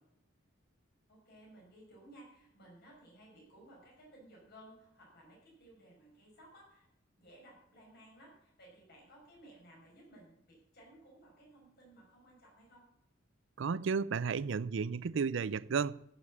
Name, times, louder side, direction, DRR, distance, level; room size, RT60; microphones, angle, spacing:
voice 1, 1.1-6.9 7.2-12.9, right 1 dB, 55° left, 5.8 m, -58 dB
voice 2, 13.6-16.0, right 5 dB, 65° right, 0.4 m, -33 dB
15.0 x 7.0 x 7.2 m
head